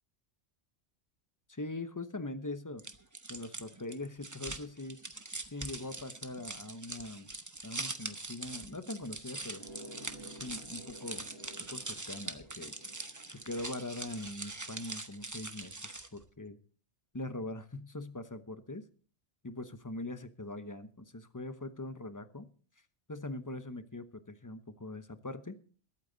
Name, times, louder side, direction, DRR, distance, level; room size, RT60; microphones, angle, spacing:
voice 1, 1.5-2.8 3.3-5.0 5.5-7.3 7.6-9.6 10.4-11.2 11.7-12.7 13.3-16.6 17.1-18.8 19.4-22.5 23.1-25.6, left 2 dB, 20° left, 10 dB, 0.8 m, -42 dB
sound 1, 2.8-16.2, right 2 dB, 20° right, 0.8 m, -43 dB
sound 2, 9.5-14.8, right 1 dB, 60° right, 1.9 m, -53 dB
22.0 x 8.7 x 3.9 m, 0.43 s
omnidirectional pair, 1.2 m